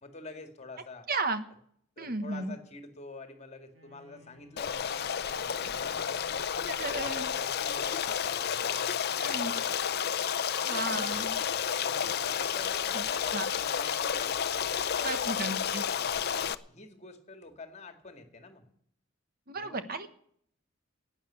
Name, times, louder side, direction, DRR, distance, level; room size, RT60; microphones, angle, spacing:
voice 1, 0.0-1.1 2.0-6.2 6.9-9.5 10.1-10.3 10.7-11.6 12.2-18.6 19.5-19.8, left 3 dB, 35° left, 7 dB, 2.0 m, -48 dB
voice 2, 1.1-1.4 2.0-2.6 6.7-7.3 9.2-9.5 10.7-11.3 12.9-13.0 13.3-13.5 15.0-15.8 19.5-20.1, right 3 dB, 45° right, 9 dB, 1.2 m, -34 dB
Wind instrument woodwind instrument, 3.7-7.7, left 2 dB, 70° right, 6.0 m, -59 dB
Stream, 4.6-16.5, left 8 dB, 50° left, 0.6 m, -31 dB
12.0 x 9.2 x 9.9 m, 0.66 s
head